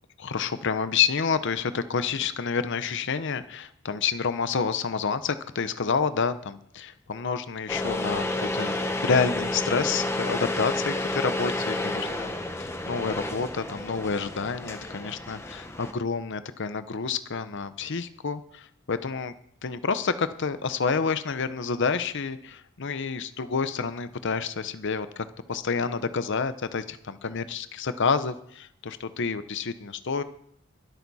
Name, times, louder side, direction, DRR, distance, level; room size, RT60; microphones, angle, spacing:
voice 1, 0.2-12.3 12.6-19.3 19.6-30.2, left 5 dB, 60° left, 12 dB, 0.7 m, -29 dB
sound 1, 7.7-15.9, left 2 dB, 15° left, 1.1 m, -30 dB
22.5 x 9.2 x 4.2 m, 0.70 s
head